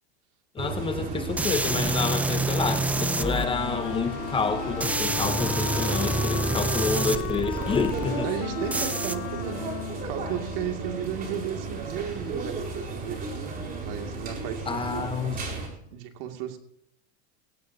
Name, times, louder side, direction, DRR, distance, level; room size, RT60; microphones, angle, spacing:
voice 1, 0.5-8.3 14.7-15.4, left 5 dB, 15° left, 8 dB, 0.9 m, -29 dB
sound 1, 0.6-15.7, right 3 dB, 25° right, 4.4 m, -35 dB
sound 2, 1.4-3.5 4.8-8.1 8.7-9.2, right 2 dB, 5° right, 0.4 m, -27 dB
Wind instrument woodwind instrument, 2.8-11.1, left 20 dB, 45° left, 0.5 m, -36 dB
voice 2, 8.2-15.1 15.8-16.6, right 9 dB, 55° right, 4 dB, 2.4 m, -34 dB
18.5 x 15.5 x 2.8 m, 0.73 s
supercardioid pair, 140°, 34 cm